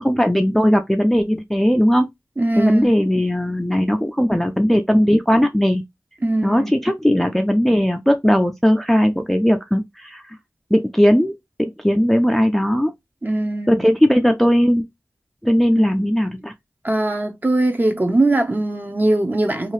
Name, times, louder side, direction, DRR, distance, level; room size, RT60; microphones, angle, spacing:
voice 1, 0.0-2.1 2.6-5.8 6.4-10.2 10.7-11.3 11.6-12.9 13.7-14.8 15.4-16.5, equal, 5° left, 0.4 m, -18 dB
voice 2, 2.4-2.9 6.2-6.7 13.2-13.8 15.7-16.0 16.8-19.7, right 2 dB, 30° right, 0.7 m, -20 dB
2.7 x 2.4 x 3.1 m
cardioid pair, 40°, 7 cm